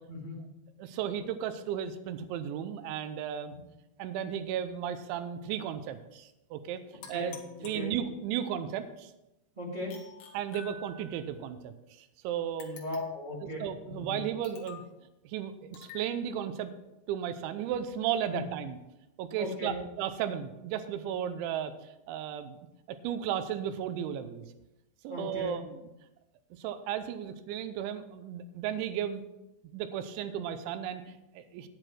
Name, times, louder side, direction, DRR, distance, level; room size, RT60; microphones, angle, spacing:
voice 1, 0.1-0.4 3.5-3.6 7.1-7.3 7.7-7.9 9.5-10.1 12.7-14.2 18.3-18.4 19.4-19.8 25.1-25.6, left 2 dB, 25° right, -5 dB, 1.0 m, -37 dB
voice 2, 0.8-3.5 4.0-6.8 7.1-7.3 7.6-9.1 10.3-12.8 13.4-14.8 15.2-16.7 17.1-18.8 19.2-22.6 22.9-24.4 25.0-25.7 26.5-29.2 29.6-31.7, right 9 dB, 85° right, 10 dB, 3.1 m, -35 dB
sound 1, 7.0-8.4 9.9-11.3 12.6-13.4 14.4-15.0 15.7-16.1, left 5 dB, 90° left, 3.9 m, -49 dB
10.0 x 9.6 x 4.5 m, 0.93 s
omnidirectional pair, 5.2 m